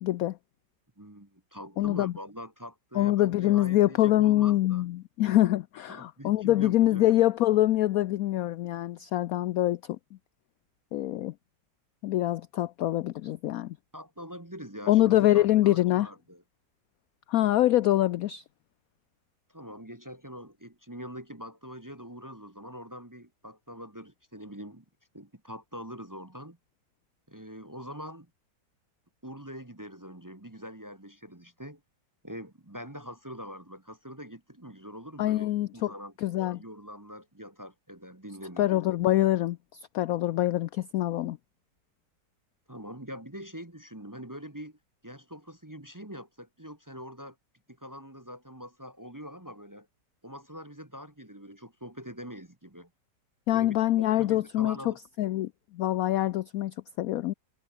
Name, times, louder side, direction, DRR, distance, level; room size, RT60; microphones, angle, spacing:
voice 1, 0.0-0.4 1.8-2.1 2.9-10.0 10.9-11.3 12.0-13.8 14.9-16.1 17.3-18.4 35.2-35.9 36.2-36.6 38.6-41.4 53.5-54.8 55.2-57.3, left 14 dB, 75° left, 0.8 m, -25 dB
voice 2, 1.0-4.8 5.9-7.0 13.9-16.4 19.5-24.8 25.1-26.6 27.3-28.3 29.2-31.8 32.2-35.5 35.7-36.1 36.5-38.7 42.7-44.8 45.0-47.4 47.8-49.9 50.2-52.9 53.5-55.0, equal, 15° right, 1.0 m, -44 dB
omnidirectional pair, 2.0 m